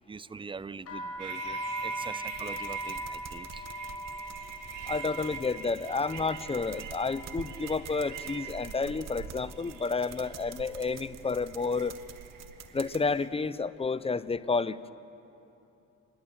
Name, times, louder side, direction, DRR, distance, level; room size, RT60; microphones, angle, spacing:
voice 1, 0.1-3.6, right 4 dB, 15° right, 19 dB, 0.5 m, -43 dB
sound 1, 0.8-8.7 9.0-9.6 10.3-10.6 10.8-12.3, left 1 dB, 55° left, 6.5 m, -42 dB
sound 2, 1.2-13.3, right 7 dB, 90° right, 2.0 m, -43 dB
sound 3, 2.3-13.0, right 8 dB, 60° right, 1.2 m, -48 dB
voice 2, 4.9-11.9 12.7-14.8, left 4 dB, 20° left, 16 dB, 0.7 m, -30 dB
26.5 x 21.5 x 7.4 m, 3.0 s
cardioid pair, 90°, 30 cm